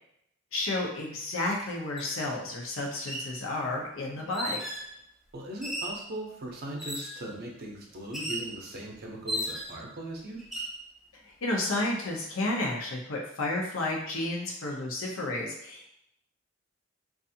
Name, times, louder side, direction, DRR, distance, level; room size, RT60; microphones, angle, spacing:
voice 1, 0.5-4.6 11.1-16.0, left 2 dB, 80° left, 0 dB, 0.6 m, -32 dB
sound 1, 2.0-2.1 2.9-3.3 4.3-4.9 5.6-6.0 6.8-7.2 8.1-8.5 9.3-9.8 10.4-10.8, equal, ahead, 0.4 m, -35 dB
voice 2, 5.3-10.4, right 1 dB, 50° right, -1 dB, 0.5 m, -39 dB
2.4 x 2.4 x 2.7 m, 0.77 s
head